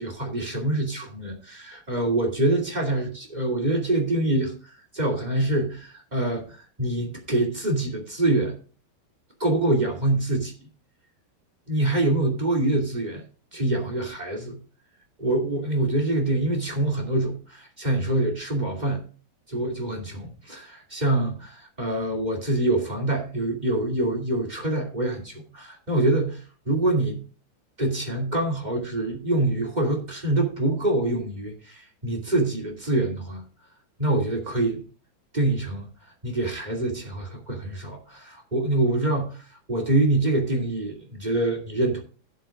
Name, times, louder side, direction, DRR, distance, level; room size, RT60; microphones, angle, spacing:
voice 1, 0.0-8.6 9.4-10.5 11.7-13.2 13.5-14.6 15.2-19.0 19.5-27.2 27.8-33.4 34.0-34.8 35.3-42.0, right 2 dB, 20° right, 0 dB, 1.2 m, -25 dB
17.0 x 8.2 x 2.4 m, 0.38 s
omnidirectional pair, 5.1 m